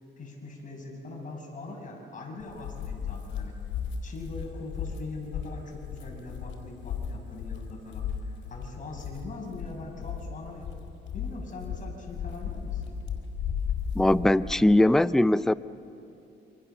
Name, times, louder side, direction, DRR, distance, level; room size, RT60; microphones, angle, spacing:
voice 1, 0.2-3.6 4.0-10.7 11.1-12.9, left 2 dB, 40° left, 0 dB, 6.5 m, -42 dB
sound 1, 2.4-14.7, left 7 dB, 75° left, 4.3 m, -35 dB
voice 2, 14.0-15.5, left 1 dB, ahead, 15 dB, 0.5 m, -21 dB
28.5 x 25.5 x 7.0 m, 2.9 s
cardioid pair, 90°, 20 cm